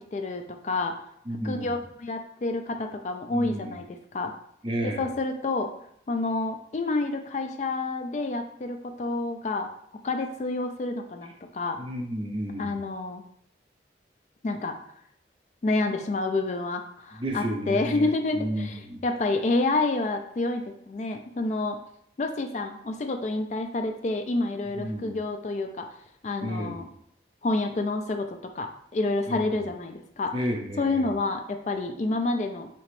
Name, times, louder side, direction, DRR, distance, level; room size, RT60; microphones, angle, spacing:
voice 1, 0.1-1.0 1.4-4.3 4.8-5.7 6.1-9.7 10.0-11.8 12.6-13.2 14.4-14.8 15.6-21.8 22.2-25.9 26.2-26.9 27.4-30.4 30.8-32.7, left 2 dB, 40° left, 5 dB, 0.3 m, -29 dB
voice 2, 1.3-1.7 3.3-3.8 4.6-5.1 11.8-12.7 17.1-18.1 18.3-19.0 24.7-25.1 26.4-26.7 29.3-29.4 30.3-31.1, equal, 30° right, 2 dB, 0.5 m, -31 dB
4.2 x 2.8 x 3.0 m, 0.70 s
head